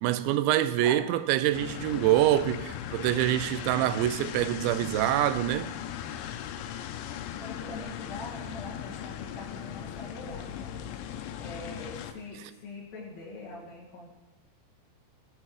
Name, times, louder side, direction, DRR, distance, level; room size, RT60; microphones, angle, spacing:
voice 1, 0.0-5.7 12.4-12.5, right 13 dB, 90° right, 3.0 m, -25 dB
sound 1, 1.5-12.1, left 10 dB, 85° left, 3.1 m, -38 dB
voice 2, 7.4-10.7 11.4-14.1, left 2 dB, 45° left, 3.0 m, -43 dB
20.5 x 7.8 x 4.8 m
omnidirectional pair, 5.1 m